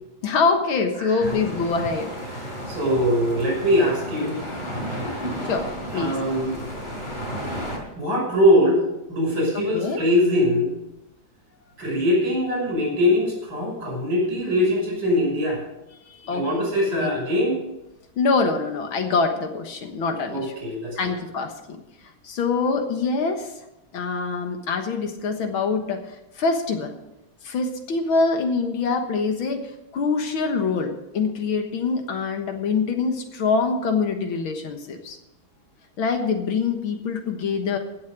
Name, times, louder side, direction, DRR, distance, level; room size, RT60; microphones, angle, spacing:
voice 1, 0.2-2.1 5.5-6.2 9.5-10.0 16.1-16.5 16.9-17.2 18.2-20.5 21.0-21.8 22.2-23.5 23.9-26.9 27.4-35.2 36.0-37.8, left 4 dB, 75° left, 5 dB, 2.2 m, -25 dB
voice 2, 1.0-1.3 2.4-4.4 5.0-5.2 5.9-6.5 8.0-8.8 9.1-10.7 11.8-15.6 16.3-17.6 20.3-21.0, equal, 60° right, -1 dB, 6.6 m, -22 dB
sound 1, 1.2-7.8, equal, 20° left, 3.9 m, -32 dB
16.0 x 7.4 x 6.3 m, 0.91 s
omnidirectional pair, 2.3 m